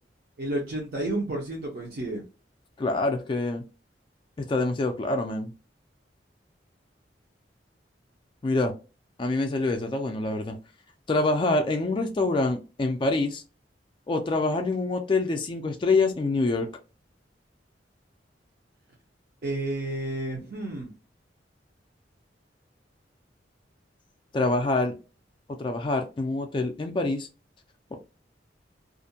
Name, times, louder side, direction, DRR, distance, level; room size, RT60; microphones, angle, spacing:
voice 1, 0.4-2.2 19.4-20.9, right 1 dB, 55° right, -2 dB, 0.6 m, -31 dB
voice 2, 2.8-3.6 4.4-5.5 8.4-8.7 9.2-10.6 11.1-13.4 14.1-16.7 24.3-24.9 25.6-27.3, left 2 dB, 25° left, 5 dB, 0.3 m, -26 dB
2.5 x 2.1 x 2.6 m, 0.31 s
head